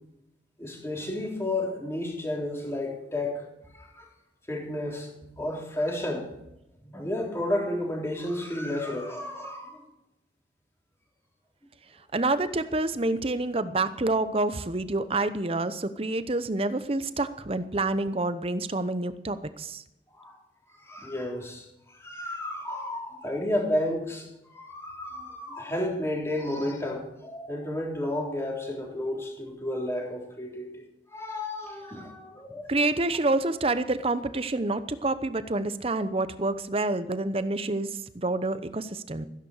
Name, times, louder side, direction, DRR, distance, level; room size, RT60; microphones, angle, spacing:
voice 1, 0.6-4.1 4.5-6.3 6.8-9.9 20.1-20.4 20.7-32.7, left 1 dB, 15° left, -1 dB, 3.6 m, -32 dB
voice 2, 12.1-19.8 32.7-39.3, right 2 dB, 35° right, 12 dB, 0.8 m, -28 dB
15.0 x 11.0 x 6.6 m, 0.88 s
head